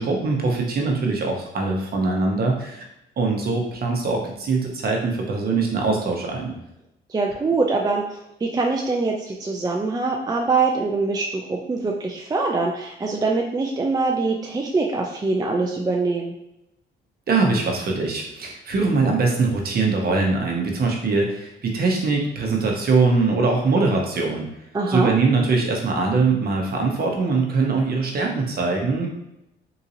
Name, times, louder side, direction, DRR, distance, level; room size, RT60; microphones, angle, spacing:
voice 1, 0.0-2.8 3.2-6.5 17.3-24.5 24.9-29.1, right 3 dB, 50° right, 1 dB, 0.9 m, -22 dB
voice 2, 7.1-16.3 24.7-25.1, right 3 dB, 20° right, 0 dB, 0.4 m, -23 dB
3.9 x 2.7 x 2.7 m, 0.85 s
cardioid pair, 90°, 20 cm